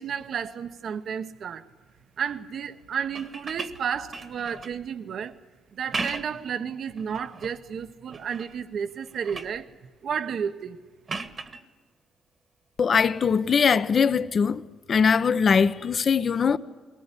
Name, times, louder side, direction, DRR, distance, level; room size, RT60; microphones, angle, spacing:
voice 1, 0.0-1.6 2.2-5.3 5.7-9.7 10.0-10.8, right 7 dB, 60° right, 1.1 m, -32 dB
sound 1, 3.0-4.8 5.7-6.5 7.0-7.6 8.1-8.6 8.9-9.6 11.1-11.6 13.4-13.5, right 4 dB, 40° right, 1.5 m, -36 dB
voice 2, 12.8-14.6 14.9-16.6, left 6 dB, 45° left, 0.9 m, -21 dB
21.5 x 19.5 x 9.8 m
cardioid pair, 90°, 0 cm